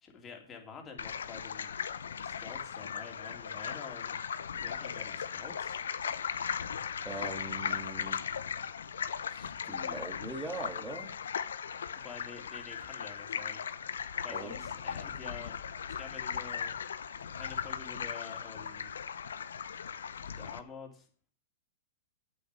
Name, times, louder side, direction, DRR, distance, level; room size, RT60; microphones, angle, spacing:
voice 1, 0.0-1.7 2.2-4.2 4.6-5.8 11.9-13.6 14.2-15.5 16.0-16.9 17.4-18.9 20.4-21.1, left 5 dB, 20° left, 2 dB, 3.0 m, -48 dB
sound 1, 1.0-20.6, left 7 dB, 85° left, 0.9 m, -38 dB
voice 2, 7.0-8.2 9.3-11.1 14.3-14.5, right 2 dB, 5° right, 4 dB, 1.9 m, -41 dB
8.5 x 6.7 x 8.3 m, 0.43 s
hypercardioid pair, 130°, 0 cm